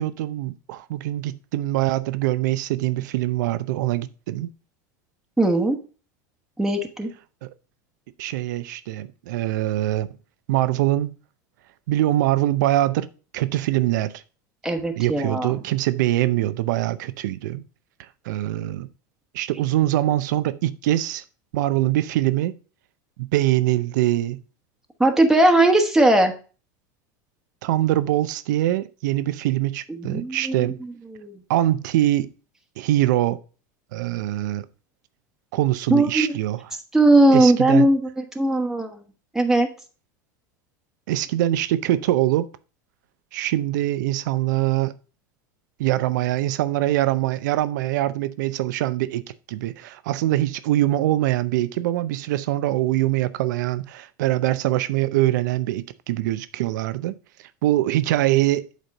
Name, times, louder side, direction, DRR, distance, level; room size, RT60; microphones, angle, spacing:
voice 1, 0.0-4.5 7.4-7.5 8.2-10.1 10.5-11.2 11.9-13.1 13.3-14.2 15.0-17.6 18.3-18.9 19.3-21.2 21.5-22.5 23.2-24.4 27.6-30.8 31.5-32.3 32.8-33.4 33.9-34.6 35.5-36.6 37.3-37.9 41.1-42.5 43.3-45.0 45.8-49.2 49.5-57.1 57.6-58.7, right 15 dB, 75° right, 0.7 m, -23 dB
voice 2, 5.4-5.8 6.6-7.1 14.6-15.6 25.0-26.3 29.9-31.4 35.9-36.4 36.9-39.0 39.3-39.7, right 1 dB, 5° right, 1.3 m, -19 dB
8.2 x 4.3 x 5.3 m
hypercardioid pair, 105°, 10 cm